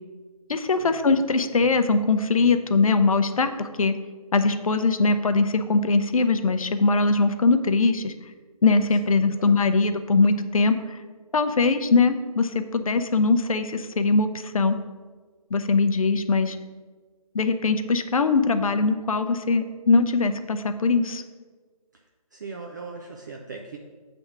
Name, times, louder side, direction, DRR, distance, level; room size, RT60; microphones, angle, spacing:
voice 1, 0.5-3.9 4.3-8.1 8.6-11.0 11.3-14.8 15.5-16.6 17.3-21.2, left 3 dB, 65° left, 9 dB, 0.6 m, -21 dB
voice 2, 9.1-9.6 22.3-23.8, right 4 dB, 30° right, 1 dB, 0.4 m, -39 dB
7.2 x 3.5 x 5.9 m, 1.4 s
figure-of-eight pair, 150°, 19 cm